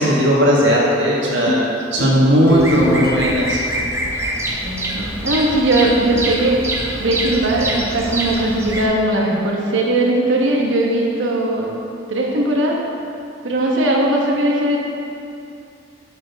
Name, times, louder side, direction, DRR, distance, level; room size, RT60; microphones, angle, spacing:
voice 1, 0.0-3.6, equal, 70° right, -4 dB, 1.4 m, -16 dB
sound 1, 1.5-4.8 5.2-5.3, left 2 dB, 55° left, 0.9 m, -30 dB
Bird vocalization bird call bird song, 2.5-8.9, right 1 dB, 15° right, 0.6 m, -25 dB
voice 2, 4.6-6.6 6.9-11.7 12.1-12.8 13.4-14.8, right 1 dB, 90° right, -1 dB, 1.0 m, -19 dB
7.4 x 6.2 x 3.5 m, 2.7 s
head